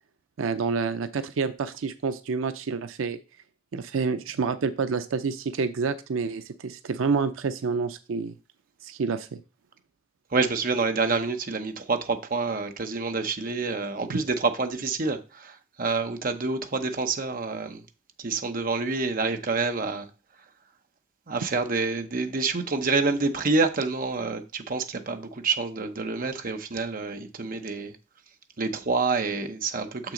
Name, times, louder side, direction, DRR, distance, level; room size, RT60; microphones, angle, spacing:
voice 1, 0.4-3.2 3.7-8.3 8.8-9.4 14.1-14.2, right 5 dB, 85° right, 0.5 m, -28 dB
voice 2, 10.3-17.8 18.2-20.1 21.3-27.9 28.6-30.1, right 4 dB, 45° right, 0.8 m, -27 dB
6.8 x 6.0 x 3.8 m
head